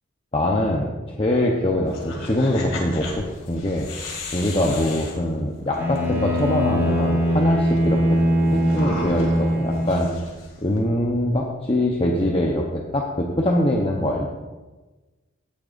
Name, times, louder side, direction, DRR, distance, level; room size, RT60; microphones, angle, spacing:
voice 1, 0.3-3.9 4.3-8.2 8.5-10.1 10.6-14.3, left 1 dB, 30° left, -1 dB, 0.8 m, -23 dB
sound 1, 1.9-6.0 6.4-6.5 6.7-10.8, left 2 dB, 75° left, 2.4 m, -35 dB
Bowed string instrument, 5.7-10.2, equal, 15° right, 2.3 m, -22 dB
16.5 x 8.9 x 2.6 m, 1.2 s
head